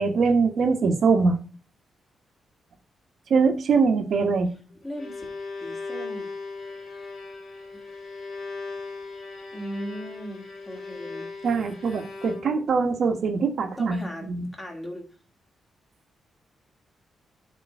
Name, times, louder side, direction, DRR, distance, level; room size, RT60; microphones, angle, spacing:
voice 1, 0.0-1.4 3.3-4.5 11.4-14.0 14.3-14.5, right 4 dB, 55° right, 6 dB, 1.2 m, -22 dB
Bowed string instrument, 4.7-12.8, left 3 dB, 50° left, 3.4 m, -38 dB
voice 2, 4.8-5.3 5.6-6.3 9.5-11.3 13.8-14.3 14.5-15.0, equal, 15° left, 1 dB, 2.1 m, -37 dB
7.6 x 3.8 x 6.5 m, 0.37 s
wide cardioid pair, 150°, 0 cm